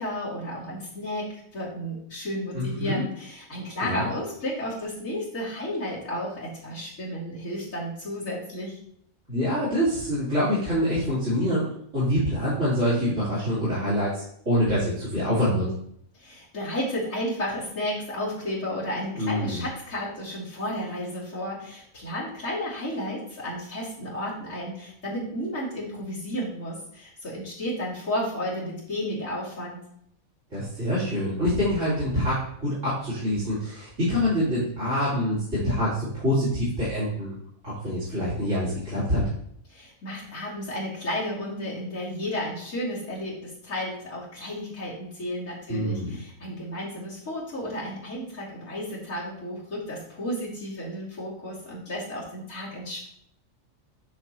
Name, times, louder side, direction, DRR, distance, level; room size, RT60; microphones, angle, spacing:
voice 1, 0.0-8.8 16.1-29.8 39.7-53.1, left 1 dB, 75° left, -10 dB, 3.2 m, -32 dB
voice 2, 2.5-3.0 3.8-4.1 9.3-11.7 11.9-15.7 19.2-19.6 30.5-37.4 37.6-39.2 45.7-46.1, equal, 60° right, -10 dB, 4.0 m, -25 dB
11.0 x 6.1 x 3.0 m, 0.69 s
omnidirectional pair, 1.4 m